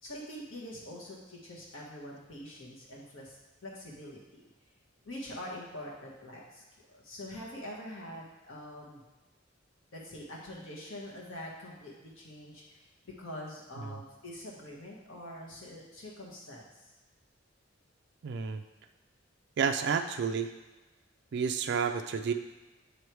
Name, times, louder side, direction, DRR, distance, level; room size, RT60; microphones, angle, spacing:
voice 1, 0.0-4.4 5.0-6.6 6.9-9.0 9.9-16.8, left 1 dB, 85° left, -3 dB, 1.4 m, -45 dB
voice 2, 18.2-18.6 19.6-20.5 21.3-22.3, right 6 dB, 60° right, 6 dB, 0.4 m, -30 dB
8.5 x 3.3 x 4.6 m, 1.2 s
head